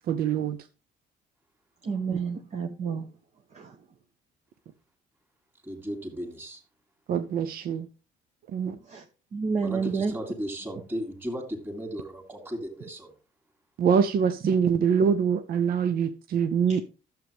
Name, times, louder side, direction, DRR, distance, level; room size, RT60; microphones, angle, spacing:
voice 1, 0.1-0.6 2.1-2.2 7.1-7.9 8.5-8.8 13.8-16.8, right 7 dB, 60° right, 0.7 m, -24 dB
voice 2, 1.8-3.1 3.5-3.8 8.8-9.0 9.3-10.1 16.7-16.8, right 5 dB, 45° right, 1.1 m, -30 dB
voice 3, 5.6-6.6 9.6-13.1, equal, 10° right, 2.7 m, -35 dB
11.5 x 7.7 x 3.5 m
cardioid pair, 110°, 17 cm